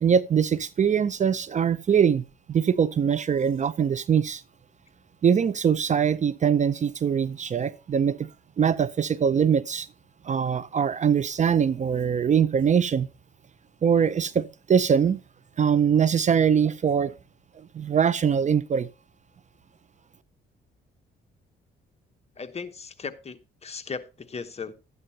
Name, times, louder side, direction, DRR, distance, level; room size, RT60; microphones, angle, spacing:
voice 1, 0.0-2.2 2.5-4.4 5.2-8.3 8.6-9.9 10.2-13.1 13.8-15.2 15.6-17.1 17.6-18.9, right 7 dB, 35° right, 0.5 m, -22 dB
voice 2, 22.4-24.7, left 5 dB, 30° left, 1.1 m, -37 dB
12.0 x 9.2 x 2.8 m
cardioid pair, 90°, 20 cm